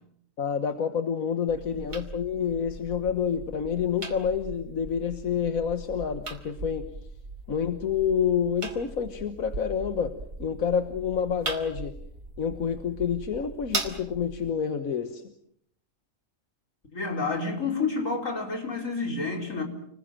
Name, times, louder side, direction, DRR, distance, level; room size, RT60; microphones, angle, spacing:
voice 1, 0.4-6.9 7.5-12.0 12.4-15.2, left 7 dB, 90° left, 1.7 m, -28 dB
sound 1, 1.5-14.5, right 3 dB, 90° right, 3.0 m, -39 dB
voice 2, 16.9-19.6, left 4 dB, 70° left, 5.0 m, -29 dB
29.0 x 20.5 x 7.5 m
omnidirectional pair, 1.4 m